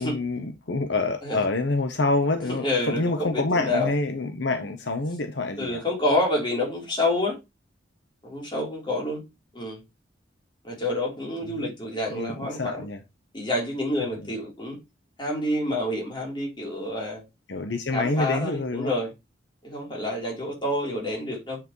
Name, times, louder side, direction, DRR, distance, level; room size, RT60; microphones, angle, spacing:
voice 1, 0.0-5.8 11.4-11.7 12.1-13.0 14.0-14.3 17.5-18.9, left 2 dB, 70° left, 0.9 m, -27 dB
voice 2, 2.6-3.9 5.6-7.4 8.2-9.2 9.5-9.8 10.6-12.9 13.3-14.8 15.2-17.2 17.9-19.1 19.6-21.6, left 1 dB, 25° left, 3.7 m, -28 dB
9.2 x 5.8 x 3.1 m
head